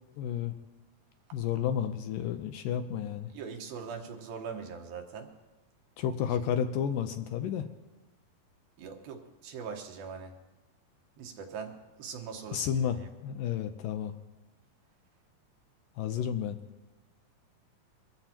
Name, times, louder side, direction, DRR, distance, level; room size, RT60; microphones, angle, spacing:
voice 1, 0.2-0.6 1.3-3.3 6.0-7.7 12.5-14.2 16.0-16.6, left 9 dB, 75° left, 8 dB, 2.2 m, -31 dB
voice 2, 3.3-5.3 8.8-10.3 11.2-12.7 13.0-13.1, right 6 dB, 80° right, 3 dB, 3.1 m, -41 dB
23.5 x 14.5 x 2.9 m, 1.1 s
omnidirectional pair, 4.2 m